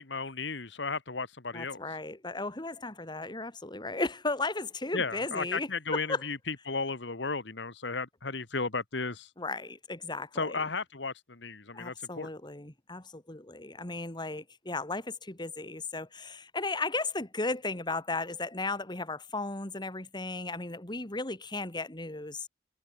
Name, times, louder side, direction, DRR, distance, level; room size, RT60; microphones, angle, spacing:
voice 1, 0.0-1.8 4.9-9.3 10.3-12.3, left 4 dB, 75° left, 1.8 m, -34 dB
voice 2, 1.5-6.2 9.4-10.6 11.7-22.5, left 3 dB, 25° left, 2.3 m, -35 dB
head